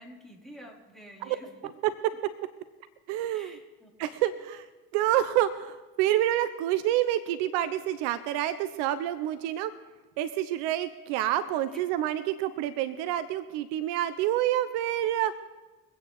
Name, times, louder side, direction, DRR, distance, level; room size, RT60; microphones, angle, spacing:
voice 1, 0.0-1.5 3.3-3.9 11.7-11.8, equal, ahead, -3 dB, 4.7 m, -49 dB
voice 2, 3.1-3.6 4.0-4.7 4.9-9.7 10.2-15.4, right 13 dB, 70° right, 13 dB, 0.9 m, -28 dB
24.0 x 8.9 x 3.5 m, 1.2 s
hypercardioid pair, 60°, 43 cm